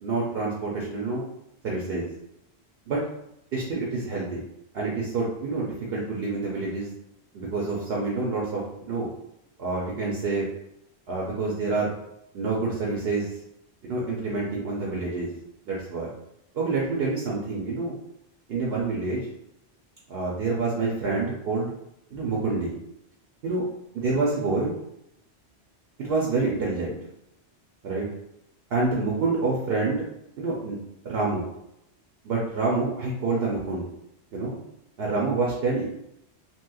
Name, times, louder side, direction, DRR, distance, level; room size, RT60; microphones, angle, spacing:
voice 1, 0.0-1.2 1.6-2.1 2.9-3.0 3.5-4.4 4.7-6.9 7.3-9.1 9.6-10.5 11.1-11.9 12.3-13.3 13.8-15.3 15.7-16.1 16.5-17.9 18.5-19.2 20.1-21.7 22.1-22.7 23.4-23.6 23.9-24.7 26.0-27.0 27.8-28.1 28.7-30.0 30.4-30.8 31.0-31.5 32.2-33.8 34.3-34.6 35.0-35.8, right 3 dB, 70° right, -3 dB, 0.8 m, -27 dB
3.0 x 2.8 x 2.3 m, 0.80 s
omnidirectional pair, 1.1 m